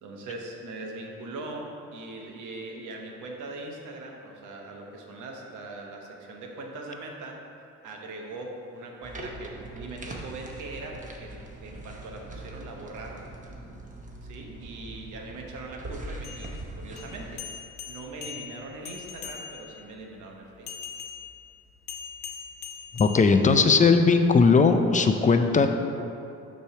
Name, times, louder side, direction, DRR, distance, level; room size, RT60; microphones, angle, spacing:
voice 1, 0.0-7.4 7.8-13.2 14.2-16.5 16.8-17.4 17.8-20.7, right 2 dB, 80° right, 0 dB, 1.0 m, -41 dB
sound 1, 9.0-17.4, right 1 dB, 25° right, 0.9 m, -41 dB
sound 2, 16.1-19.8 20.7-23.8, left 7 dB, 65° left, 0.7 m, -41 dB
voice 2, 22.9-25.7, left 4 dB, 25° left, 7 dB, 0.4 m, -19 dB
6.8 x 3.1 x 5.7 m, 2.7 s
cardioid pair, 90°, 30 cm